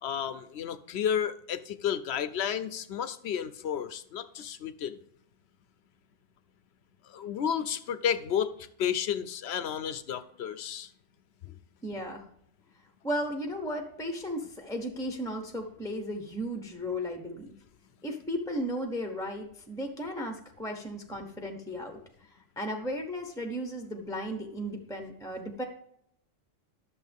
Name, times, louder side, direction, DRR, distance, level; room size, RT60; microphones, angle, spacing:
voice 1, 0.0-5.0 7.1-8.5 8.8-10.9 11.4-11.5, left 8 dB, 60° left, 13 dB, 0.9 m, -32 dB
voice 2, 11.8-12.3 13.0-17.6 18.0-22.3 22.6-25.6, equal, 5° left, 4 dB, 0.8 m, -35 dB
11.5 x 6.9 x 3.5 m, 0.74 s
omnidirectional pair, 1.3 m